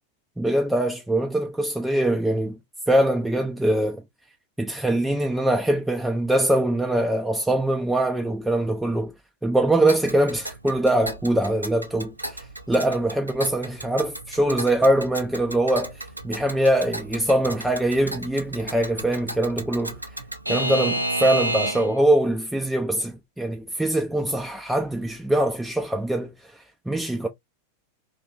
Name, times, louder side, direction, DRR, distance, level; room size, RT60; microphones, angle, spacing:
voice 1, 0.4-2.6 2.9-4.0 4.6-9.1 9.4-20.2 20.5-27.3, right 1 dB, 5° right, 0.3 m, -23 dB
Alarm / Clock, 9.9-22.0, right 1 dB, 85° right, 0.4 m, -32 dB
2.7 x 2.3 x 2.3 m
figure-of-eight pair, 90°, 0 cm